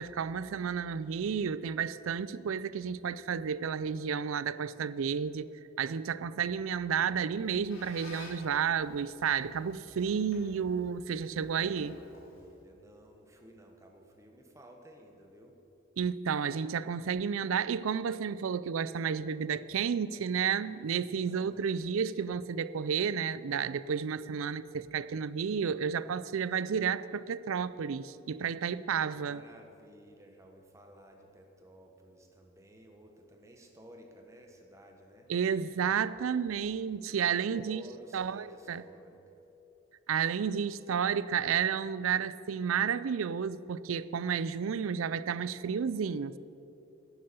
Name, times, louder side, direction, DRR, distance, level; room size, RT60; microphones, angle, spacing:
voice 1, 0.0-12.0 16.0-29.4 35.3-37.8 38.1-38.8 40.1-46.4, right 7 dB, 85° right, 0.4 m, -31 dB
Squeak, 7.2-12.7, left 2 dB, 85° left, 3.2 m, -54 dB
voice 2, 11.4-15.5 21.3-21.8 29.0-35.3 37.2-39.4, right 1 dB, 15° right, 1.2 m, -54 dB
11.0 x 10.5 x 6.9 m
head